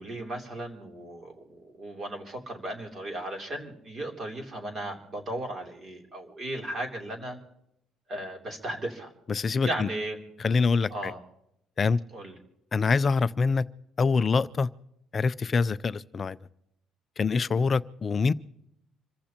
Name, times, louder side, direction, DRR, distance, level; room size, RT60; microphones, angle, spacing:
voice 1, 0.0-7.4 8.1-9.1 9.6-10.2 10.9-11.2 12.1-12.4, right 1 dB, 35° right, 3.2 m, -36 dB
voice 2, 9.3-9.9 10.4-11.1 11.8-12.0 12.7-13.6 14.0-14.7 15.1-16.4 17.2-18.3, left 4 dB, 25° left, 0.5 m, -25 dB
27.0 x 15.0 x 3.0 m
cardioid pair, 155°, 0 cm